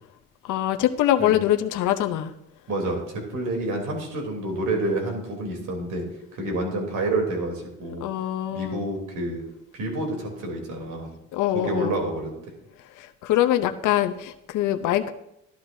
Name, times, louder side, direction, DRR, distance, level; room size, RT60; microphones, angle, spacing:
voice 1, 0.4-2.3 8.0-8.8 11.3-11.9 13.0-15.1, left 12 dB, 85° left, 7 dB, 0.7 m, -23 dB
voice 2, 2.7-6.1 6.3-8.1 8.5-9.4 9.7-11.1 11.5-12.3, right 2 dB, 80° right, 1 dB, 3.3 m, -28 dB
14.0 x 12.0 x 2.7 m, 0.81 s
cardioid pair, 90°, 30 cm